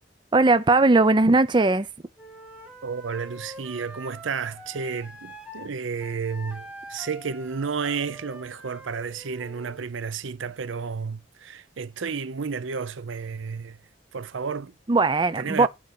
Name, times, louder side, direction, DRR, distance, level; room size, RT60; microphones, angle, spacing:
voice 1, 0.3-1.9 14.9-15.7, right 3 dB, 25° right, 0.5 m, -19 dB
Wind instrument woodwind instrument, 2.2-5.7 6.0-9.8, right 1 dB, 5° right, 1.9 m, -44 dB
voice 2, 2.8-13.8 14.1-14.7 15.4-15.7, right 5 dB, 80° right, 0.6 m, -32 dB
9.1 x 4.6 x 6.8 m
head